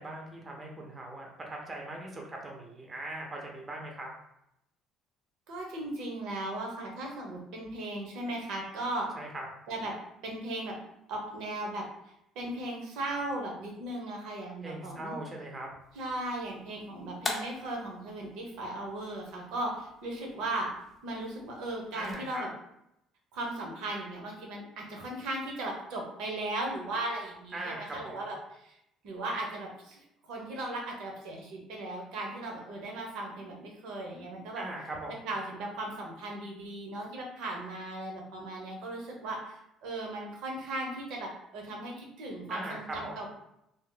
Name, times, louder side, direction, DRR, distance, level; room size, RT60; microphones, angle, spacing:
voice 1, 0.0-4.1 9.1-9.5 14.6-15.7 21.9-22.5 27.5-28.2 34.6-35.3 42.5-43.2, right 1 dB, 20° right, 0 dB, 0.6 m, -40 dB
voice 2, 5.5-9.1 9.7-9.9 10.2-10.8 11.1-15.2 15.9-20.7 21.0-22.5 23.3-28.4 28.6-28.8 29.0-34.6 35.2-43.3, right 1 dB, 75° right, 0 dB, 0.8 m, -37 dB
sound 1, 15.8-22.2, left 2 dB, 20° left, 0.6 m, -44 dB
2.7 x 2.0 x 3.7 m, 0.81 s
cardioid pair, 120°, 0 cm